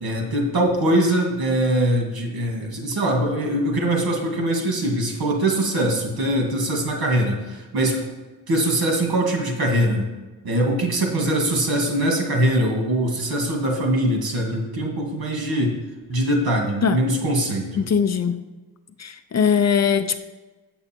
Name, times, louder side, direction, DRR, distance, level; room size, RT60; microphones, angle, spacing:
voice 1, 0.0-8.1 8.5-10.1 10.4-15.7 16.1-17.8, right 1 dB, 70° right, 0 dB, 1.9 m, -22 dB
voice 2, 17.8-18.4 19.0-20.2, left 7 dB, 45° left, 10 dB, 0.5 m, -20 dB
7.7 x 7.0 x 4.4 m, 1.2 s
wide cardioid pair, 135°, 38 cm